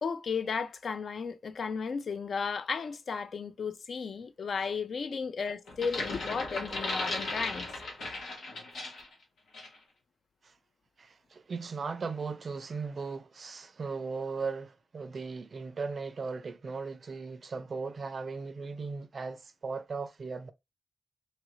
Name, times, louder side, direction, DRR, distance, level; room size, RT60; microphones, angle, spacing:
voice 1, 0.0-7.7, left 5 dB, 55° left, 0.4 m, -34 dB
sound 1, 5.7-9.1 9.5-9.8, left 2 dB, 80° left, 0.9 m, -36 dB
voice 2, 11.0-20.5, right 4 dB, 45° right, 0.4 m, -37 dB
3.1 x 2.4 x 3.0 m
wide cardioid pair, 110°, 0 cm